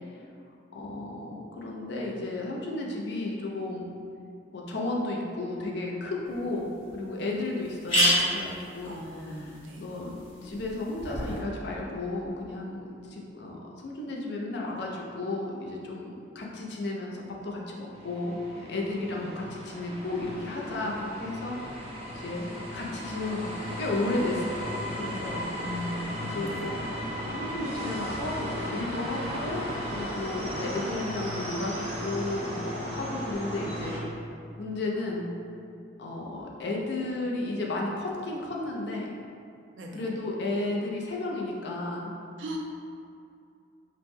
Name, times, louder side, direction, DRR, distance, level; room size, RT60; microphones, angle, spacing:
voice 1, 0.7-3.9 4.5-8.9 9.2-13.6 13.8-21.9 22.1-22.4 22.7-25.4 26.2-26.9 27.3-34.0 34.6-35.3 36.0-39.1 39.9-42.1, left 2 dB, 65° left, -2 dB, 0.5 m, -33 dB
sound 1, 6.3-6.4 6.9-7.0 7.2-7.3 7.6-11.4, equal, 30° left, 1.2 m, -30 dB
voice 2, 8.8-9.8 19.1-19.3 25.6-26.7 39.8-40.1 42.4-42.6, equal, 90° right, 0 dB, 0.4 m, -38 dB
sound 2, 17.9-34.0, equal, 35° right, 0.6 m, -36 dB
2.9 x 2.0 x 3.4 m, 2.5 s
head